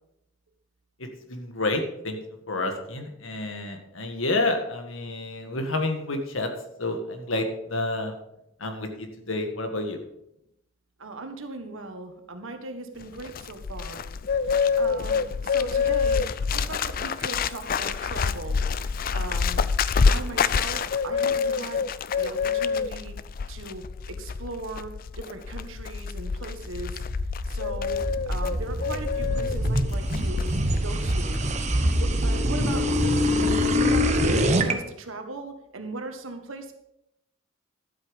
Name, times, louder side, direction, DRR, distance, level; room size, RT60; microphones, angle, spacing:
voice 1, 1.0-2.2 2.5-6.5 6.8-8.1 8.6-10.0, left 2 dB, 75° left, 5 dB, 1.7 m, -29 dB
voice 2, 11.0-14.0 14.5-16.2 16.5-18.6 19.1-19.7 20.1-21.9 22.2-23.2 23.5-27.0 27.4-28.0 28.3-30.5 30.8-31.4 31.9-33.3 33.6-36.7, right 2 dB, 75° right, 6 dB, 1.5 m, -38 dB
Bird, 13.0-30.8 31.1-31.4, left 5 dB, 45° left, 0.4 m, -27 dB
sound 1, 26.7-34.7, equal, 35° right, 1.0 m, -24 dB
12.0 x 8.1 x 5.3 m, 0.83 s
head